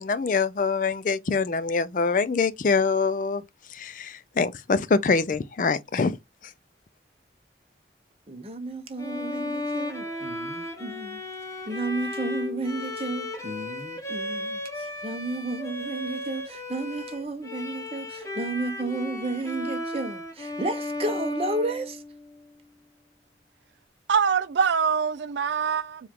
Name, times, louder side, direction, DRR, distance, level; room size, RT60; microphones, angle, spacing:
voice 1, 0.0-3.4 3.7-6.1, left 4 dB, 45° left, 0.4 m, -24 dB
voice 2, 8.3-11.2 11.7-22.0, right 2 dB, 35° right, 0.8 m, -32 dB
Bowed string instrument, 9.0-22.4, left 2 dB, 15° left, 0.9 m, -35 dB
voice 3, 24.1-26.1, right 6 dB, 85° right, 0.4 m, -24 dB
4.7 x 2.4 x 3.6 m
head